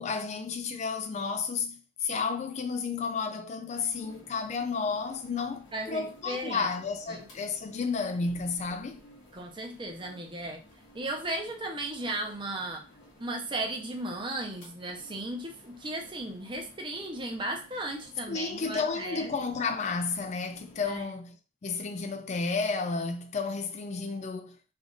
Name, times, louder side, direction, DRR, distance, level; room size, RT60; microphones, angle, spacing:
voice 1, 0.0-9.0 18.3-21.4 21.6-24.6, left 4 dB, 40° left, 0.3 m, -32 dB
sound 1, 3.7-21.0, equal, 75° left, 1.4 m, -56 dB
voice 2, 5.7-6.7 7.1-7.2 9.3-10.6 10.9-12.8 13.2-19.3 20.9-21.0, right 1 dB, 25° right, 0.7 m, -36 dB
3.4 x 2.5 x 3.8 m
head